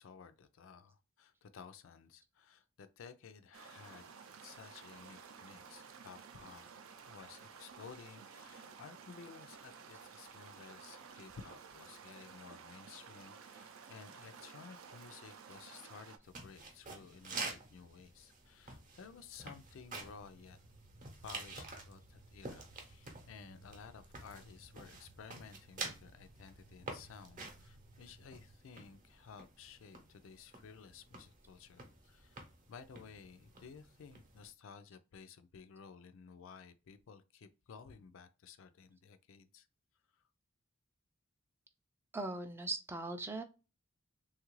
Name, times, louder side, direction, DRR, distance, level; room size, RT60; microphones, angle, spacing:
voice 1, 0.0-4.1 4.4-6.7 7.1-20.6 21.2-32.4 32.7-39.7 40.1-40.2, left 6 dB, 65° left, 0.4 m, -55 dB
sound 1, 3.5-16.2, right 6 dB, 70° right, 0.5 m, -54 dB
sound 2, 16.2-34.5, right 3 dB, 40° right, 0.7 m, -49 dB
sound 3, 18.5-28.6, right 2 dB, 90° right, 0.9 m, -62 dB
voice 2, 42.1-43.4, right 2 dB, 10° right, 0.3 m, -39 dB
3.2 x 2.4 x 3.0 m
head